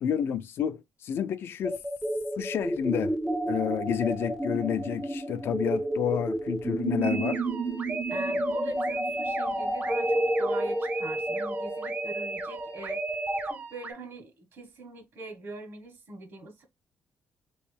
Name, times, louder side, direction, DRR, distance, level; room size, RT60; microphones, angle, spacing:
voice 1, 0.0-1.8 2.4-3.1 3.5-7.4, left 9 dB, 65° left, 0.5 m, -30 dB
sound 1, 1.6-13.5, right 1 dB, 5° right, 0.5 m, -30 dB
sound 2, 7.0-13.9, right 3 dB, 40° right, 0.8 m, -38 dB
voice 2, 8.1-13.1 13.4-16.6, right 3 dB, 60° right, 1.5 m, -42 dB
3.1 x 3.1 x 3.2 m
cardioid pair, 120°, 4 cm